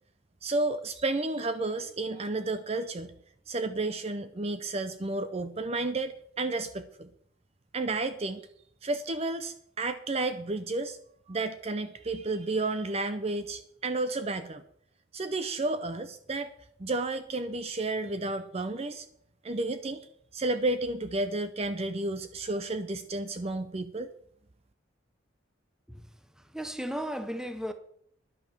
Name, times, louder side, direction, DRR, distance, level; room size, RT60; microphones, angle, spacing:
voice 1, 0.4-3.1 3.5-7.1 7.7-8.4 8.8-11.0 11.3-14.6 15.1-16.5 16.8-19.1 19.4-20.1 20.3-24.1, right 2 dB, 30° right, 0.6 m, -31 dB
voice 2, 26.5-27.7, equal, 5° right, 0.9 m, -35 dB
11.0 x 8.3 x 6.5 m
head